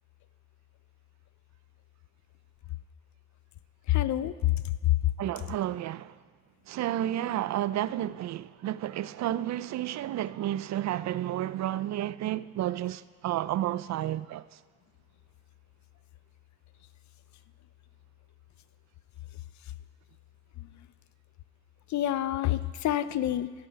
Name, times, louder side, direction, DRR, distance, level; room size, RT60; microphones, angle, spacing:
voice 1, 3.9-4.3 21.9-23.5, left 13 dB, 70° left, 0.6 m, -27 dB
voice 2, 5.2-6.2 6.7-14.6, right 13 dB, 65° right, 0.5 m, -31 dB
12.5 x 9.7 x 5.9 m
cardioid pair, 90°, 30 cm